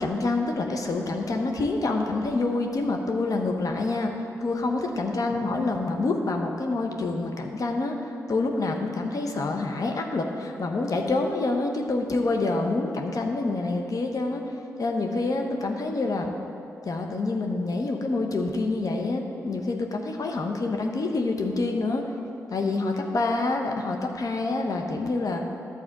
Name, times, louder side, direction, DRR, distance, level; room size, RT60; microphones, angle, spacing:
voice 1, 0.0-4.1 4.4-7.9 8.3-14.4 14.8-16.3 16.8-22.0 22.5-25.4, left 3 dB, 60° left, 3 dB, 1.1 m, -27 dB
11.0 x 4.2 x 7.3 m, 2.7 s
supercardioid pair, 40°, 7 cm